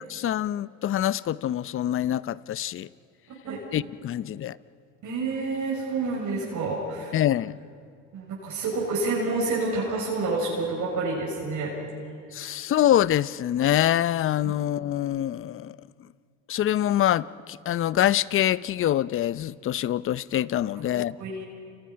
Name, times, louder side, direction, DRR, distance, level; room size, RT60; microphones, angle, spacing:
voice 1, 0.1-2.9 3.7-4.6 7.1-7.6 12.3-15.8 16.5-21.2, left 12 dB, 35° left, 0.6 m, -25 dB
voice 2, 5.0-7.2 8.1-11.7 14.4-14.5 21.2-21.4, right 3 dB, 50° right, 6.9 m, -28 dB
29.5 x 29.0 x 5.8 m
supercardioid pair, 95°, 39 cm